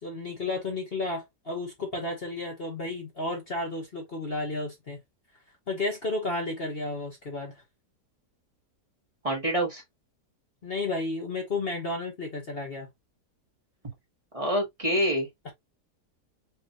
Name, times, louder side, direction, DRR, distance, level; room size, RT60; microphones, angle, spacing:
voice 1, 0.0-5.0 5.7-7.6 10.6-12.9 15.4-15.5, left 2 dB, 40° left, 1.3 m, -32 dB
voice 2, 9.2-9.8 14.3-15.3, equal, 20° right, 1.8 m, -26 dB
5.6 x 3.1 x 2.7 m
omnidirectional pair, 1.7 m